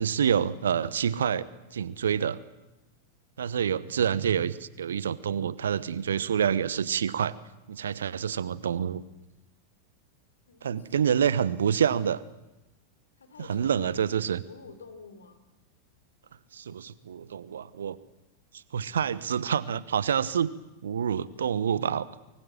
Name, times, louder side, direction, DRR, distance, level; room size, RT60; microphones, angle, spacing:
voice 1, 0.0-1.5 1.7-2.4 3.4-7.4 7.7-9.0 10.6-12.2 13.5-14.4 16.5-18.0 18.7-20.5 20.8-22.1, right 8 dB, 65° right, 19 dB, 1.0 m, -27 dB
voice 2, 10.5-11.5 13.2-14.1 14.5-15.4, left 4 dB, 70° left, 9 dB, 3.7 m, -49 dB
24.5 x 24.0 x 7.6 m, 0.97 s
figure-of-eight pair, 90°, 0 cm